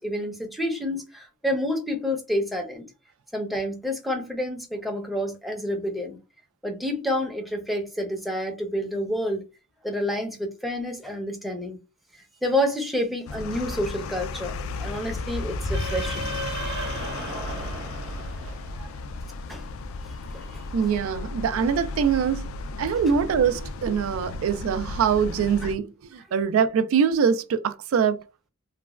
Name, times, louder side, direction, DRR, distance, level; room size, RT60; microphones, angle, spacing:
voice 1, 0.0-2.9 3.3-6.2 6.6-9.4 9.8-11.8 12.4-14.5 14.8-16.3 18.8-18.9 19.5-19.7 20.3-20.6, equal, ahead, 0.5 m, -29 dB
sound 1, 13.3-25.7, left 3 dB, 75° left, 0.3 m, -34 dB
sound 2, 15.6-19.1, right 1 dB, 55° right, 0.7 m, -34 dB
voice 2, 20.7-22.5 22.8-28.5, right 7 dB, 75° right, 0.3 m, -23 dB
3.2 x 2.1 x 2.3 m
head